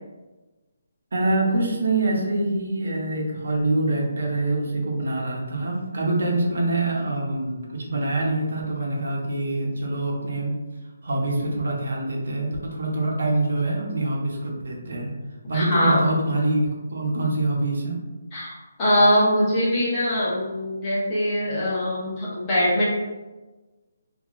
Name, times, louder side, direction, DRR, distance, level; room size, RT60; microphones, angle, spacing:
voice 1, 1.1-10.5 11.0-15.1 15.5-18.0, right 2 dB, 70° right, -2 dB, 0.9 m, -25 dB
voice 2, 15.5-16.0 18.3-22.8, equal, 20° left, -8 dB, 0.8 m, -22 dB
2.8 x 2.6 x 2.5 m, 1.2 s
hypercardioid pair, 170°, 0 cm